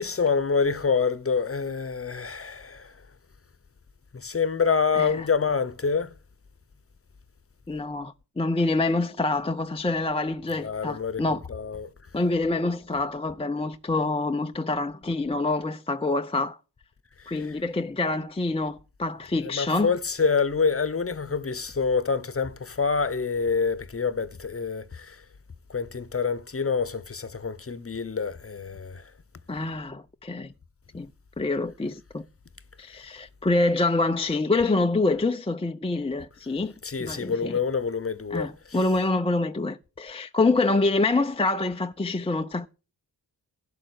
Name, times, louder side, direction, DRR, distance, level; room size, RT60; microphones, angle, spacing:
voice 1, 0.0-2.9 4.1-6.1 10.6-11.9 19.5-25.2 25.7-29.0 36.8-38.5, left 5 dB, 30° left, 1.0 m, -26 dB
voice 2, 4.9-5.3 7.7-11.4 12.1-16.6 17.3-19.9 29.5-30.5 30.9-31.1 31.4-32.2 32.8-36.7 37.0-37.6 38.3-42.7, left 2 dB, 15° left, 0.6 m, -26 dB
12.0 x 7.7 x 6.2 m
cardioid pair, 45°, 42 cm